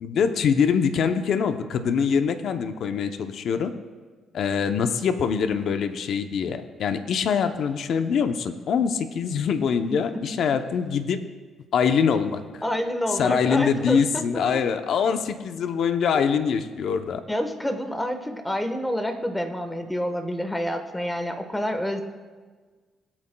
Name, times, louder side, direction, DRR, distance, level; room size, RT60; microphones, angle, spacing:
voice 1, 0.0-3.7 4.3-11.2 11.7-12.6 13.1-17.2, left 6 dB, 70° left, 8 dB, 0.7 m, -24 dB
voice 2, 9.9-10.2 12.6-14.2 16.1-16.2 17.3-22.0, equal, 10° left, 6 dB, 1.2 m, -28 dB
21.5 x 8.7 x 2.3 m, 1.4 s
cardioid pair, 90°, 0 cm